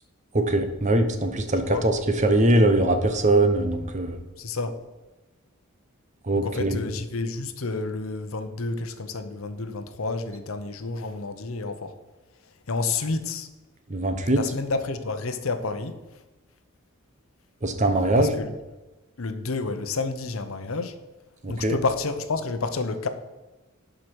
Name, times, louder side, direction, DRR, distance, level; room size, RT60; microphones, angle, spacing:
voice 1, 0.3-1.9 2.2-4.2 6.3-6.8 13.9-14.4 17.6-18.3 21.4-21.7, right 1 dB, 35° right, 7 dB, 0.9 m, -21 dB
voice 2, 4.4-4.8 6.3-11.9 12.7-13.5 14.3-16.0 18.2-18.5 19.2-20.9 21.5-23.1, left 3 dB, 75° left, 9 dB, 0.8 m, -30 dB
11.5 x 5.0 x 4.6 m, 1.1 s
head